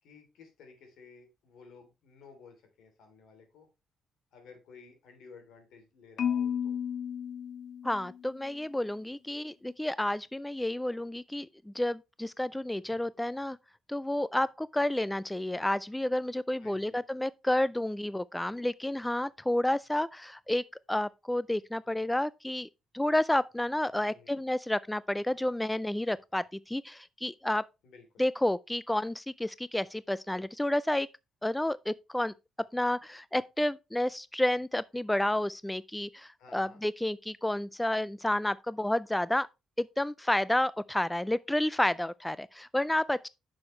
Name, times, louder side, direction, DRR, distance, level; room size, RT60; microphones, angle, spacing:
voice 1, 0.0-3.7 4.3-6.8 16.6-17.0 24.0-24.4 27.8-28.1 36.4-36.8, left 5 dB, 80° left, 3.0 m, -54 dB
Marimba xylophone, 6.2-8.4, left 8 dB, 60° left, 0.8 m, -33 dB
voice 2, 7.8-13.6 13.9-22.7 22.9-27.6 28.2-31.1 31.4-32.3 32.7-39.5 39.8-43.3, left 1 dB, 10° left, 0.3 m, -30 dB
9.6 x 6.3 x 3.2 m
cardioid pair, 90°, 0 cm